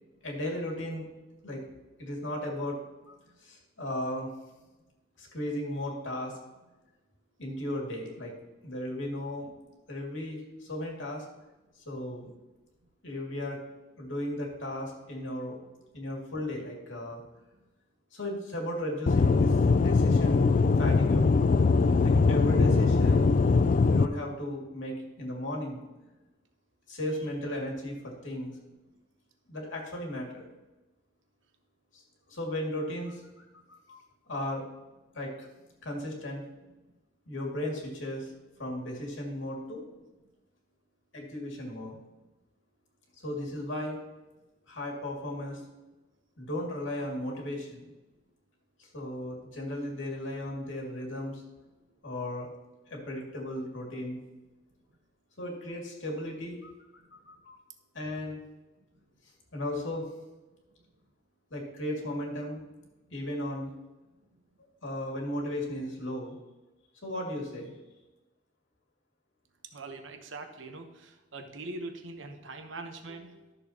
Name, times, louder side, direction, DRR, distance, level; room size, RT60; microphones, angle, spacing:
voice 1, 0.2-1.0 1.4-1.6 2.0-2.8 3.1-4.3 5.2-6.4 7.4-8.3 8.6-9.5 9.9-11.3 11.9-12.3 13.0-13.6 14.0-15.6 15.9-17.2 18.1-19.6 19.8-20.5 20.8-21.3 22.0-23.3 23.9-25.8 26.9-28.5 29.5-30.5 31.9-32.0 32.3-33.3 33.7-34.6 35.1-35.5 35.8-36.4 37.3-38.3 38.6-39.8 41.1-42.0 43.2-44.0 44.7-45.6 46.4-47.9 48.8-51.4 52.0-52.5 52.9-54.2 55.4-56.7 57.1-57.6 57.9-58.4 59.5-60.1 61.5-62.6 63.1-63.7 64.8-66.4 67.0-67.8, left 1 dB, 80° left, -1 dB, 2.3 m, -35 dB
Aircraft / Engine, 19.1-24.1, left 4 dB, 40° left, 0.3 m, -22 dB
voice 2, 69.7-73.5, right 2 dB, 80° right, 6 dB, 1.0 m, -42 dB
12.5 x 6.9 x 2.9 m, 1.1 s
head